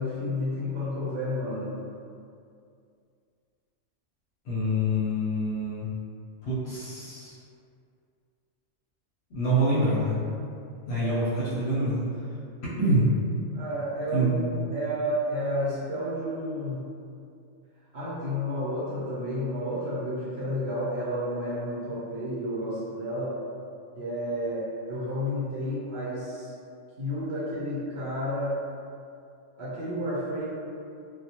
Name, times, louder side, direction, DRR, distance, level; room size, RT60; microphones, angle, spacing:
voice 1, 0.0-1.7 11.0-11.2 13.5-16.8 17.9-23.3 24.0-26.5 27.0-28.6 29.6-30.4, equal, 60° right, -10 dB, 1.0 m, -31 dB
voice 2, 4.5-5.9 6.4-7.3 9.3-10.2 10.9-12.0 12.8-13.1 14.1-14.6, right 1 dB, 60° left, -8 dB, 0.8 m, -26 dB
2.3 x 2.1 x 2.8 m, 2.4 s
omnidirectional pair, 1.3 m